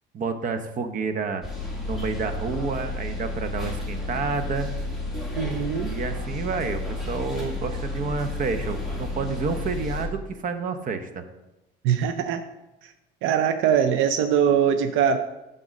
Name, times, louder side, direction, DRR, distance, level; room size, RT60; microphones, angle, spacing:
voice 1, 0.1-1.4 1.8-4.7 5.9-11.2, right 4 dB, 40° right, 8 dB, 0.8 m, -29 dB
sound 1, 1.4-10.1, left 2 dB, ahead, 1.8 m, -31 dB
voice 2, 5.4-5.9 11.8-12.4 13.2-15.2, right 8 dB, 80° right, 9 dB, 0.5 m, -22 dB
8.1 x 3.8 x 6.3 m, 1.0 s
cardioid pair, 115°, 20 cm